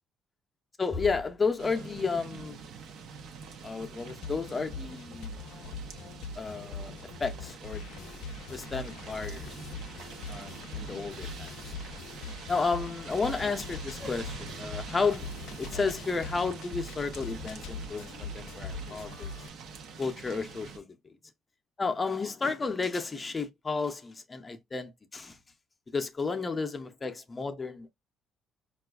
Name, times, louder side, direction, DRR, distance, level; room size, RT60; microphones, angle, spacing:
voice 1, 0.8-2.6 3.6-5.4 6.4-6.9 7.2-8.2 8.7-9.6 10.3-11.7 12.5-15.2 15.6-19.3 20.0-21.0 21.8-25.4 25.9-27.9, left 4 dB, 25° left, 0.5 m, -32 dB
sound 1, 1.6-20.8, right 5 dB, 75° right, 0.6 m, -45 dB
sound 2, 4.0-19.5, left 4 dB, 85° left, 0.3 m, -42 dB
4.4 x 2.3 x 2.3 m
cardioid pair, 100°, 0 cm